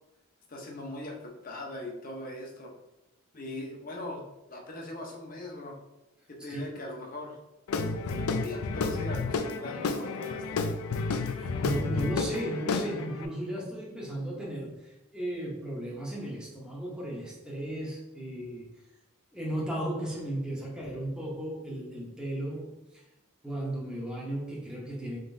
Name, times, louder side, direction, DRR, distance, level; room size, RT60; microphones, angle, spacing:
voice 1, 0.5-2.7 3.3-4.2 4.5-5.8 6.3-7.4 8.0-10.6, left 2 dB, 40° left, 0 dB, 0.7 m, -40 dB
Guitar / Drum, 7.7-13.3, left 4 dB, 85° left, 0.4 m, -31 dB
voice 2, 11.2-18.7 19.3-23.0 23.4-25.2, right 1 dB, 5° right, -4 dB, 0.7 m, -35 dB
3.8 x 3.7 x 2.6 m, 0.96 s
head